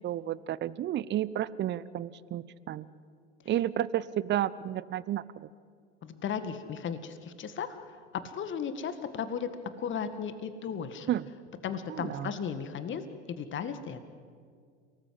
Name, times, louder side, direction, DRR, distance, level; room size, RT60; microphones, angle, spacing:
voice 1, 0.0-2.9 3.5-5.5 11.1-11.3 11.9-12.3, right 12 dB, 30° right, 18 dB, 0.8 m, -32 dB
voice 2, 6.0-7.8 8.3-9.5 9.8-11.1 11.6-14.0, left 7 dB, 35° left, 10 dB, 1.9 m, -35 dB
29.5 x 18.5 x 7.9 m, 2.1 s
figure-of-eight pair, 75°, 35 cm